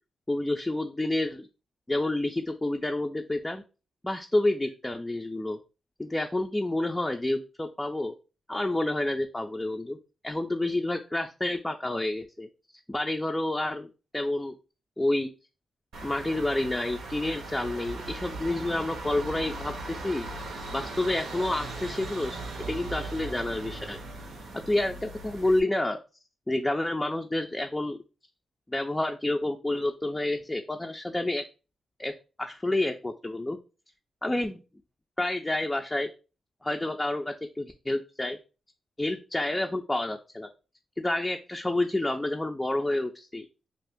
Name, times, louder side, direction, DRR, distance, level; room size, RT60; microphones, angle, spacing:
voice 1, 0.3-1.5 1.9-3.6 4.0-5.6 6.0-8.1 8.5-10.0 10.2-12.5 12.9-13.9 14.1-14.5 15.0-15.3 16.0-20.3 20.7-24.0 24.7-26.0 26.5-28.0 28.7-31.4 32.0-32.1 32.4-33.6 34.2-34.6 35.2-36.1 36.6-38.4 39.0-40.5 41.0-43.5, left 1 dB, 15° left, 4 dB, 0.4 m, -29 dB
sound 1, 15.9-25.6, right 2 dB, 85° right, 0.6 m, -38 dB
2.5 x 2.4 x 3.5 m, 0.32 s
supercardioid pair, 55°, 0 cm